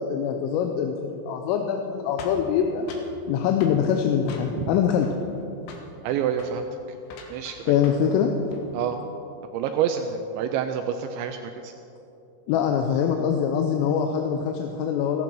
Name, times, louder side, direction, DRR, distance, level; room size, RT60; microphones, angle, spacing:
voice 1, 0.0-2.9 3.3-5.1 7.7-8.4 12.5-15.2, left 8 dB, 85° left, 3 dB, 3.4 m, -24 dB
sound 1, 2.2-3.2 3.6-3.8 4.3-4.7 5.0-5.4 5.7-5.9 6.3-6.6 7.0-8.1 8.4-8.7, left 4 dB, 70° left, 3.2 m, -43 dB
voice 2, 6.0-6.7 7.3-7.8 8.7-9.0 9.5-11.7, right 8 dB, 85° right, 6 dB, 2.6 m, -27 dB
15.5 x 14.5 x 4.6 m, 2.7 s
omnidirectional pair, 5.8 m